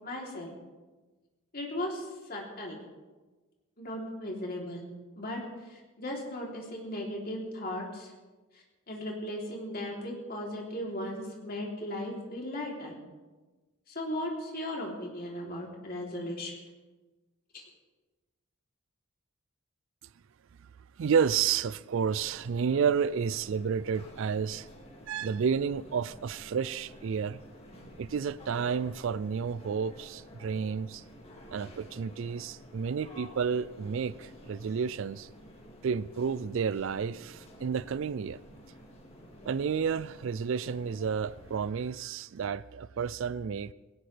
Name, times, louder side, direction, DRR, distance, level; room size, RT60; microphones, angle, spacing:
voice 1, 0.0-0.5 1.5-2.8 3.8-4.8 5.2-8.1 8.5-12.9 13.9-16.6 17.5-17.6, left 1 dB, 45° left, 3.3 m, -37 dB
voice 2, 21.0-24.7 25.1-27.4 28.0-31.0 31.5-35.3 35.8-38.4 39.5-43.7, right 6 dB, 65° right, 0.4 m, -31 dB
sound 1, 22.1-41.6, equal, 30° left, 2.2 m, -51 dB
20.0 x 17.5 x 3.4 m
head